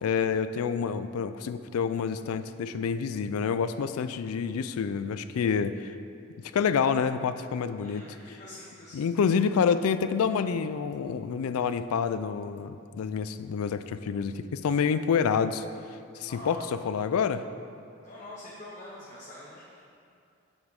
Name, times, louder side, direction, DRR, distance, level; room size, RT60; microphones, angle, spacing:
voice 1, 0.0-5.9 6.5-8.0 8.9-15.6 16.2-16.6 16.9-17.4, left 6 dB, 90° left, 12 dB, 0.4 m, -28 dB
voice 2, 7.8-9.0 16.3-16.6 18.0-19.8, left 2 dB, 35° left, -6 dB, 0.9 m, -45 dB
8.0 x 7.3 x 3.6 m, 2.6 s
head